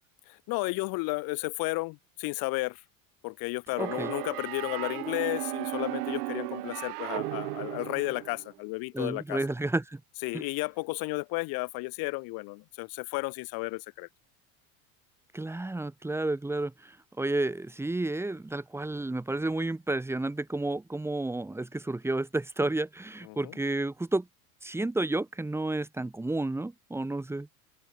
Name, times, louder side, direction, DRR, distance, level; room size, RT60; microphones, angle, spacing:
voice 1, 0.3-2.8 3.2-9.4 10.2-14.1 23.2-23.5, left 26 dB, 50° left, 7.4 m, -33 dB
voice 2, 3.8-4.1 8.9-10.0 10.3-10.4 15.3-24.3 24.6-27.5, right 2 dB, 5° right, 5.8 m, -31 dB
sound 1, 3.8-8.5, right 23 dB, 90° right, 3.2 m, -35 dB
open air
cardioid pair, 170°, 44 cm